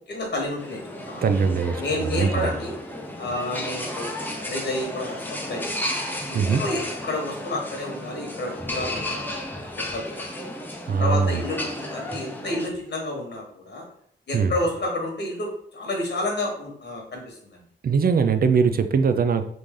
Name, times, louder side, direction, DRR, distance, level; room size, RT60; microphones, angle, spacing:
voice 1, 0.1-0.8 1.1-1.2 1.8-2.7 3.2-5.9 6.3-9.2 9.8-10.4 11.0-13.8 14.3-17.6, left 1 dB, 60° left, -1 dB, 1.2 m, -30 dB
sound 1, 0.6-12.7, left 1 dB, 10° left, 0.5 m, -33 dB
voice 2, 1.2-2.5 6.3-6.6 10.9-11.3 14.3-14.5 17.8-19.4, right 5 dB, 50° right, 9 dB, 0.4 m, -21 dB
3.9 x 3.2 x 3.7 m, 0.65 s
wide cardioid pair, 175°, 20 cm